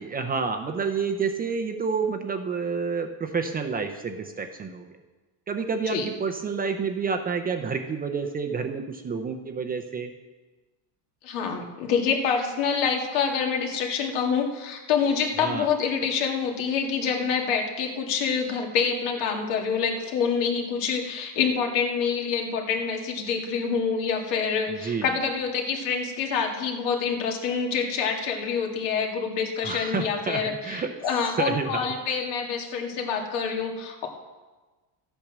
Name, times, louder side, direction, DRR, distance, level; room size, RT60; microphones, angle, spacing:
voice 1, 0.0-4.9 5.5-10.1 15.4-15.7 24.7-25.0 29.6-30.9 31.4-31.9, right 5 dB, 20° right, 5 dB, 0.5 m, -29 dB
voice 2, 11.2-34.1, left 6 dB, 75° left, 2 dB, 2.2 m, -26 dB
13.5 x 8.7 x 6.1 m, 1.3 s
cardioid pair, 155°, 48 cm